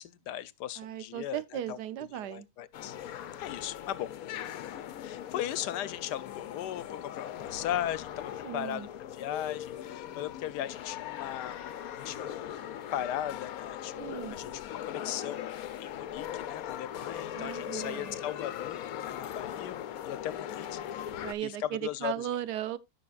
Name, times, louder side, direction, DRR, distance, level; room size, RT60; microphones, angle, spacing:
voice 1, 0.0-1.8 2.1-3.0 3.4-4.1 5.0-11.6 12.0-12.2 12.9-14.0 14.3-14.6 14.9-18.8 19.1-19.7 20.0-21.1 21.4-22.3, left 11 dB, 85° left, 1.3 m, -37 dB
voice 2, 0.8-2.5 8.4-8.9 14.0-14.4 17.3-18.2 21.2-22.8, right 12 dB, 80° right, 1.3 m, -36 dB
sound 1, 2.7-21.3, left 10 dB, 70° left, 1.1 m, -40 dB
14.0 x 6.0 x 2.4 m
omnidirectional pair, 1.7 m